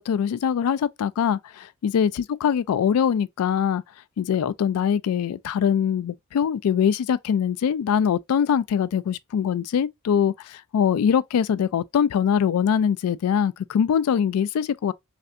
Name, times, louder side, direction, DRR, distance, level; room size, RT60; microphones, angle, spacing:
voice 1, 0.0-3.8 4.2-14.9, left 8 dB, 85° left, 0.3 m, -23 dB
3.3 x 2.5 x 2.6 m
head